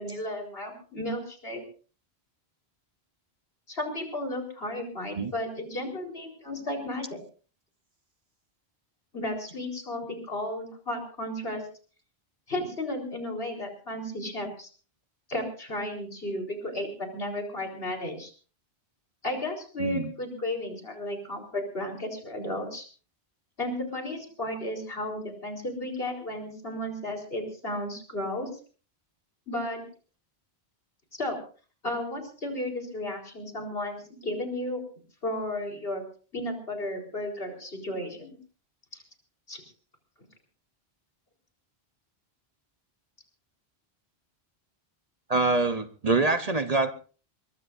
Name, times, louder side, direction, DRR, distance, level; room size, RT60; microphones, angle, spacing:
voice 1, 0.0-1.6 3.7-7.2 9.1-11.6 12.5-14.7 15.3-18.3 19.2-22.9 23.6-28.5 29.5-29.8 31.2-31.4 31.8-34.8 35.2-36.0 36.3-38.4 38.9-39.0 39.5-39.6, left 1 dB, 65° left, 2 dB, 4.6 m, -33 dB
voice 2, 19.8-20.1 45.3-46.9, right 3 dB, 40° right, 10 dB, 0.9 m, -25 dB
23.5 x 20.5 x 2.6 m, 0.39 s
omnidirectional pair, 1.1 m